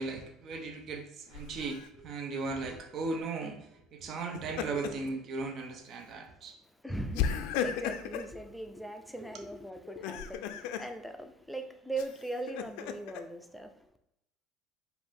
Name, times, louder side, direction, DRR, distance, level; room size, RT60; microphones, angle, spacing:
voice 1, 0.0-3.6 3.9-6.5, right 3 dB, 50° right, 0.7 m, -37 dB
Laughter, 1.3-1.9 4.2-5.1 5.5-5.7 7.1-8.3 9.9-10.9 12.0-13.2, left 8 dB, 75° left, 0.4 m, -35 dB
voice 2, 6.1-13.9, right 2 dB, ahead, 0.5 m, -40 dB
4.8 x 2.6 x 3.5 m
supercardioid pair, 105°, 0 cm